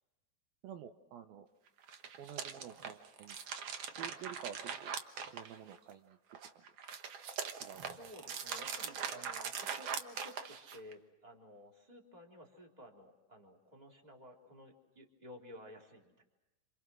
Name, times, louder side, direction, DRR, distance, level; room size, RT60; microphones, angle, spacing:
voice 1, 0.6-1.5 2.2-3.4 4.0-4.9 5.3-6.2 6.6-6.7 7.5-8.0, right 9 dB, 75° right, 7 dB, 2.7 m, -49 dB
sound 1, 1.8-5.9 6.3-10.9, right 7 dB, 60° right, 1.7 m, -42 dB
voice 2, 7.8-16.2, left 1 dB, 10° right, 0 dB, 3.4 m, -55 dB
29.0 x 27.5 x 6.3 m, 1.0 s
omnidirectional pair, 4.4 m